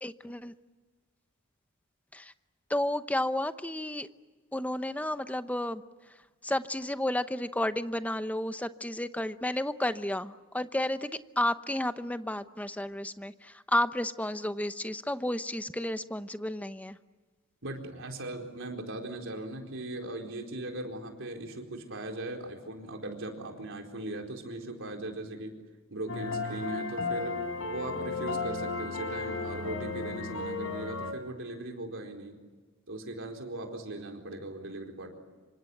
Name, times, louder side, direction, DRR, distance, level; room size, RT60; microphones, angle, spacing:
voice 1, 0.0-0.5 2.1-2.3 2.7-4.1 4.5-5.8 6.4-17.0, left 1 dB, 5° left, 11 dB, 0.8 m, -32 dB
voice 2, 17.6-25.5 25.9-27.4 27.7-32.4 32.9-35.1, right 2 dB, 65° right, 3 dB, 4.4 m, -39 dB
sound 1, 26.1-31.1, left 4 dB, 70° left, 4.0 m, -34 dB
27.0 x 25.0 x 7.9 m, 1.4 s
head